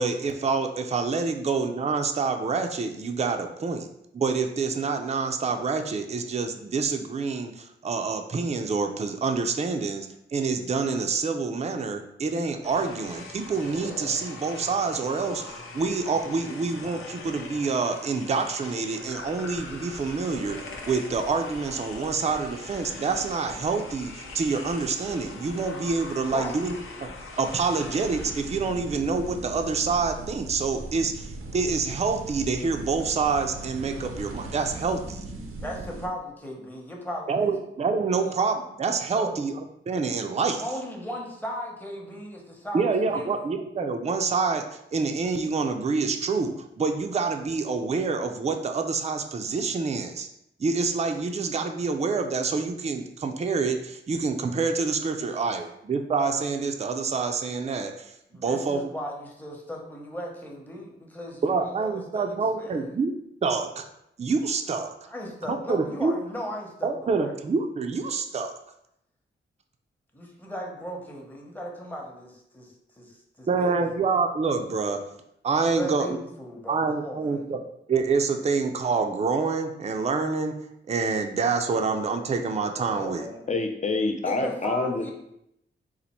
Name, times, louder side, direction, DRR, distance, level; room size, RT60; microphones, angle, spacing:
voice 1, 0.0-3.9 4.1-20.6 20.9-27.1 27.4-35.2 37.3-40.6 42.7-44.6 44.9-50.3 50.6-58.1 58.4-58.9 61.4-63.1 63.4-63.8 64.2-64.9 65.5-66.1 66.8-68.5 73.5-75.0 75.4-76.2 76.7-77.6 77.9-80.5 80.9-83.3, right 4 dB, 30° right, 5 dB, 0.4 m, -27 dB
sound 1, 12.6-30.0, left 3 dB, 90° left, 0.6 m, -42 dB
sound 2, 19.1-29.0, equal, 70° left, 1.0 m, -47 dB
sound 3, 28.0-36.1, right 2 dB, 85° right, 0.6 m, -39 dB
voice 2, 35.6-37.6 38.1-38.2 39.1-39.4 40.5-43.4 55.2-55.3 58.3-62.9 65.1-67.3 70.1-73.9 75.7-77.5 82.9-83.5 84.2-85.1, equal, 10° left, -1 dB, 0.8 m, -37 dB
voice 3, 83.5-85.1, left 3 dB, 35° left, 4 dB, 0.5 m, -27 dB
4.1 x 2.5 x 4.2 m, 0.78 s
wide cardioid pair, 110°, 21 cm